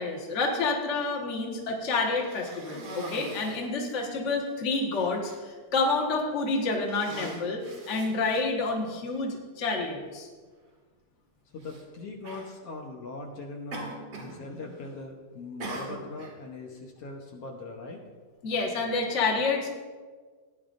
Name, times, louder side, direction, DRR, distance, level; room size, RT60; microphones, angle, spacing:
voice 1, 0.0-10.3 18.4-19.7, left 3 dB, 85° left, -1 dB, 0.6 m, -29 dB
Cough, 2.1-3.7 4.4-4.5 4.9-5.4 6.1-6.4 6.8-8.7 9.7-9.8 11.6-11.8 12.2-12.5 13.7-14.4 14.7-15.1 15.6-16.4, right 2 dB, 50° right, 2.6 m, -41 dB
voice 2, 11.5-18.0, left 3 dB, 65° left, 0 dB, 1.5 m, -40 dB
17.0 x 10.0 x 2.6 m, 1.5 s
omnidirectional pair, 3.9 m